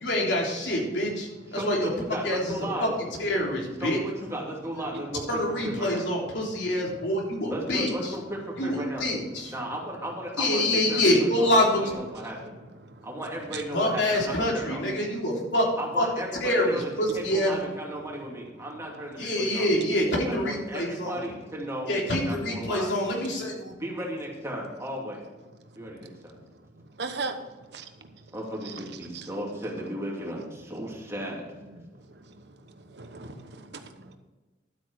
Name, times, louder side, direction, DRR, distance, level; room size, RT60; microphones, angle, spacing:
voice 1, 0.0-1.8 2.3-2.4 3.2-4.0 5.3-7.9 8.6-9.5 10.4-12.0 13.7-15.7 16.0-16.1 16.4-16.7 17.0-17.5 19.2-21.1 21.9-23.7, left 1 dB, 85° left, -2 dB, 3.5 m, -26 dB
voice 2, 1.5-2.9 3.8-6.1 7.5-9.1 9.5-12.5 13.0-14.8 15.8-19.7 20.3-22.9 23.8-25.2 25.7-26.4 28.3-31.4, equal, 15° right, -2 dB, 2.7 m, -35 dB
voice 3, 27.0-27.4 27.7-27.8 29.1-29.3 32.9-34.2, right 4 dB, 65° right, 8 dB, 1.1 m, -36 dB
12.0 x 8.4 x 4.8 m, 1.2 s
head